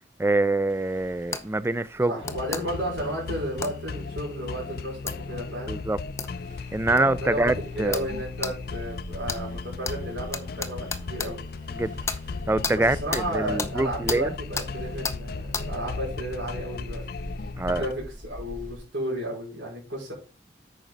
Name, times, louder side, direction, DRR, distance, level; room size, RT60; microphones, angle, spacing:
voice 1, 0.2-2.2 5.7-6.0 6.7-8.1 11.7-11.9 12.5-14.3 17.6-17.9, right 2 dB, 15° right, 0.3 m, -25 dB
sound 1, 0.7-18.8, equal, 45° right, 1.3 m, -43 dB
sound 2, 1.3-1.4 2.2-2.6 3.6-3.7 5.1-5.2 6.2-6.3 7.0-7.1 7.9-8.1 8.4-8.5 9.3-9.4 9.8-10.0 10.3-11.3 12.1-12.2 12.6-12.8 13.1-13.3 13.6-13.7 14.1-14.2 14.6-14.7 15.0-15.2 15.5-15.7, left 4 dB, 15° left, 0.8 m, -31 dB
voice 2, 2.1-5.8 6.9-11.5 12.7-17.0 17.7-20.1, right 1 dB, 75° right, 5.1 m, -33 dB
sound 3, 2.2-17.9, left 4 dB, 55° left, 0.4 m, -37 dB
9.0 x 6.1 x 4.0 m
head